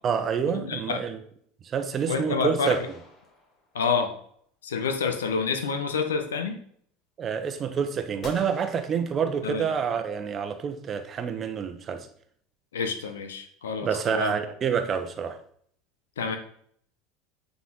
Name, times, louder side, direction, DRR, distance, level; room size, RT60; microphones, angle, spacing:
voice 1, 0.0-1.2 1.6-2.8 7.2-12.1 13.8-15.4, right 7 dB, 35° right, 0.8 m, -27 dB
voice 2, 0.5-1.0 2.1-2.7 3.7-4.1 4.6-6.6 9.4-9.6 12.7-14.3 16.2-16.4, left 5 dB, 70° left, 1.0 m, -28 dB
sound 1, 2.6-4.1 8.2-9.8, left 2 dB, 40° left, 2.0 m, -47 dB
9.2 x 4.1 x 4.0 m
figure-of-eight pair, 75°, 0 cm